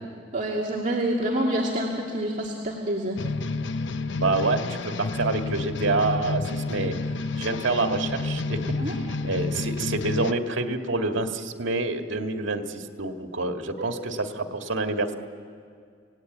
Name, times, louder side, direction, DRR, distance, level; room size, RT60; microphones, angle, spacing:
voice 1, 0.3-3.2 8.8-8.9, right 1 dB, 40° right, -3 dB, 2.3 m, -27 dB
sound 1, 3.2-10.3, left 3 dB, 70° left, 0.6 m, -30 dB
voice 2, 4.2-6.9 7.4-15.1, right 3 dB, 85° right, 5 dB, 1.8 m, -27 dB
28.0 x 18.0 x 9.3 m, 2.2 s
head